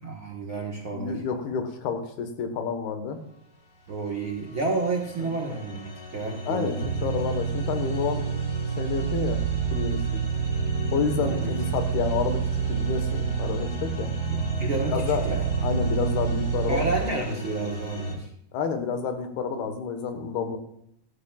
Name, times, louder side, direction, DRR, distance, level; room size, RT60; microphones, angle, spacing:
voice 1, 0.0-1.2 3.9-6.9 11.2-11.5 14.3-15.4 16.7-18.3, right 3 dB, 55° right, -2 dB, 1.5 m, -30 dB
voice 2, 0.9-3.2 5.2-5.3 6.5-8.3 8.8-9.4 9.7-10.2 10.9-14.1 14.9-15.3 15.6-16.8 18.5-20.6, left 6 dB, 75° left, 6 dB, 3.4 m, -29 dB
sound 1, 3.8-18.1, left 1 dB, 30° left, 2.1 m, -36 dB
sound 2, 6.8-17.0, right 8 dB, 80° right, 2.2 m, -28 dB
18.0 x 12.5 x 2.5 m, 0.74 s
omnidirectional pair, 4.6 m